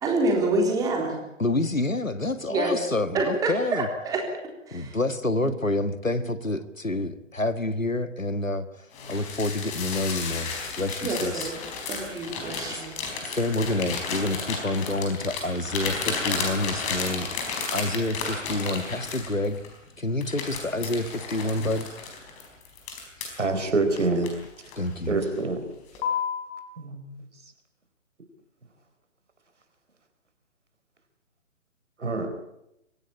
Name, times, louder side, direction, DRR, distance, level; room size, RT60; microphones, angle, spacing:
voice 1, 0.0-1.2 2.5-2.8 3.1-4.3 4.7-5.0 11.0-11.6 11.9-13.0, right 2 dB, 10° right, 1 dB, 3.6 m, -26 dB
voice 2, 1.4-3.9 4.7-11.5 12.7-12.8 13.2-19.6 20.0-21.9 24.8-25.2, left 2 dB, 90° left, 12 dB, 1.9 m, -28 dB
sound 1, 8.9-19.7 20.2-23.4 24.0-24.9 25.2-25.5 25.9-26.5, left 5 dB, 15° left, 4.3 m, -33 dB
voice 3, 23.4-24.3 25.1-25.6 26.8-27.0 32.0-32.3, right 3 dB, 65° right, 8 dB, 4.4 m, -25 dB
24.0 x 16.0 x 8.7 m, 0.84 s
figure-of-eight pair, 140°, 38 cm